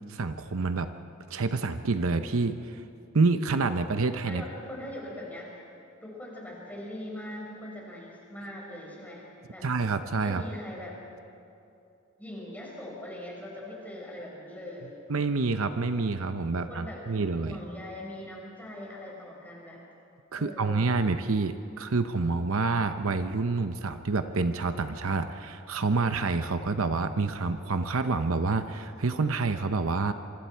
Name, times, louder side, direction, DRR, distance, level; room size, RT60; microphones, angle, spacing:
voice 1, 0.1-0.9 1.3-2.8 3.1-4.4 9.6-10.4 15.1-17.6 20.3-30.1, right 3 dB, 65° right, 9 dB, 0.7 m, -28 dB
voice 2, 4.2-5.6 6.0-9.7 10.2-11.0 12.2-14.9 16.5-19.8 20.4-20.9, left 1 dB, 5° left, -3 dB, 5.2 m, -41 dB
26.5 x 25.0 x 4.6 m, 2.6 s
head